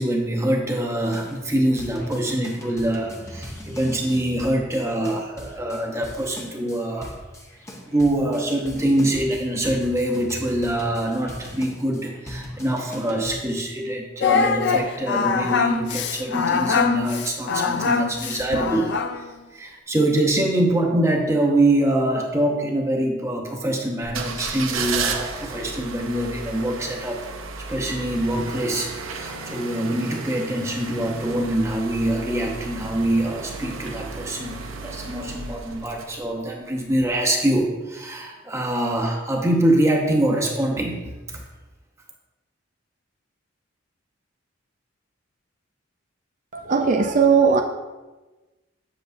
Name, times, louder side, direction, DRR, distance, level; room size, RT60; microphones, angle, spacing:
voice 1, 0.0-7.2 7.9-19.0 19.5-27.4 27.7-41.4, right 1 dB, 15° right, 1 dB, 0.9 m, -24 dB
sound 1, 1.0-13.4, left 1 dB, 15° left, 0.7 m, -40 dB
Singing, 14.2-19.3, left 5 dB, 55° left, 0.5 m, -23 dB
sound 2, 24.0-36.5 37.0-37.1, right 4 dB, 75° right, 0.7 m, -33 dB
voice 2, 46.5-47.6, right 5 dB, 40° right, 4 dB, 0.4 m, -18 dB
8.1 x 7.8 x 2.6 m, 1.2 s
head